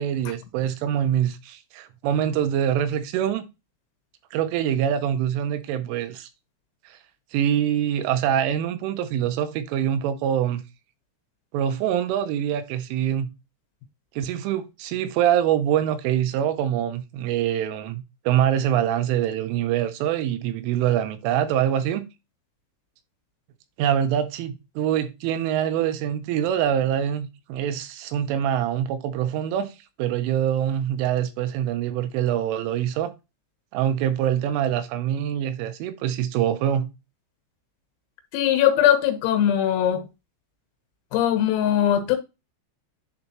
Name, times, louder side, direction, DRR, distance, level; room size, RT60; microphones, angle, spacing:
voice 1, 0.0-3.5 4.3-6.3 6.9-7.0 7.3-10.6 11.5-13.3 14.2-22.1 23.8-29.7 30.0-33.1 33.7-36.9, right 10 dB, 80° right, 3.0 m, -24 dB
voice 2, 38.3-40.0 41.1-42.2, left 10 dB, 90° left, 4.0 m, -20 dB
10.5 x 3.8 x 3.0 m
omnidirectional pair, 5.9 m